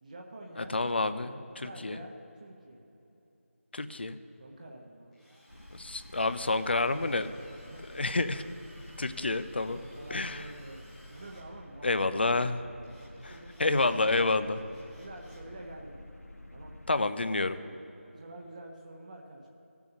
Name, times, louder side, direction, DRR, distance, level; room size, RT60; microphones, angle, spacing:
voice 1, 0.0-0.7 1.6-2.8 4.4-5.2 6.7-7.3 7.7-8.0 9.0-9.3 9.9-12.5 12.9-13.0 13.2-13.9 15.0-16.1 16.5-16.8 18.1-19.5, right 1 dB, 35° right, 0 dB, 1.0 m, -48 dB
voice 2, 0.7-2.0 3.7-4.2 5.7-7.3 7.9-8.4 9.0-9.8 10.1-10.4 11.8-12.6 13.2-13.3 13.6-14.6 16.9-17.6, left 3 dB, 50° left, 12 dB, 0.6 m, -29 dB
Drill, 5.1-11.4 12.8-14.1 14.5-15.5, equal, ahead, 0.7 m, -58 dB
sound 1, 5.5-16.9, left 1 dB, 90° left, 1.1 m, -50 dB
15.5 x 7.0 x 6.7 m, 2.9 s
figure-of-eight pair, 165°, 8 cm